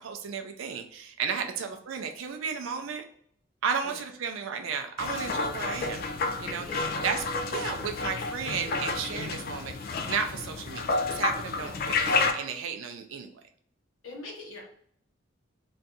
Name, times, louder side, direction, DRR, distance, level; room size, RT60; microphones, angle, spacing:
voice 1, 0.0-3.0 3.6-6.0 6.4-13.3, right 6 dB, 70° right, 5 dB, 0.4 m, -34 dB
sound 1, 5.0-12.3, left 3 dB, 45° left, 0.3 m, -30 dB
voice 2, 6.5-7.2 11.5-11.8 14.0-14.6, left 2 dB, 85° left, -2 dB, 1.1 m, -44 dB
2.6 x 2.3 x 3.9 m, 0.62 s
head